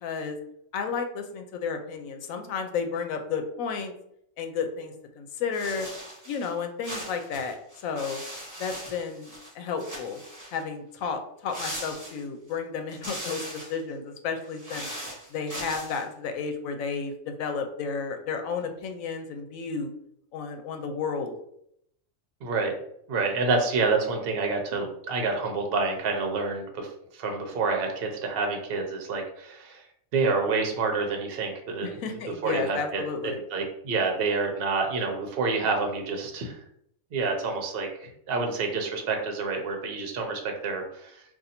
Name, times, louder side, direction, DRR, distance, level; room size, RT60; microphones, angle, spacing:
voice 1, 0.0-0.4 0.7-3.9 4.4-5.9 6.3-7.6 7.8-8.2 8.6-10.2 10.5-13.4 13.7-14.9 15.3-19.9 20.3-21.3 31.8-33.4, left 5 dB, 85° left, 6 dB, 1.0 m, -32 dB
sound 1, 5.5-6.5 6.8-9.5 9.8-10.6 11.5-12.5 12.9-13.8 14.4-16.0, right 1 dB, 15° right, 1.0 m, -39 dB
voice 2, 22.4-22.7 23.1-26.9 27.1-29.8 30.1-32.0 32.4-36.6 37.1-41.2, right 4 dB, 55° right, 3 dB, 0.8 m, -28 dB
2.6 x 2.5 x 4.1 m, 0.72 s
omnidirectional pair, 1.4 m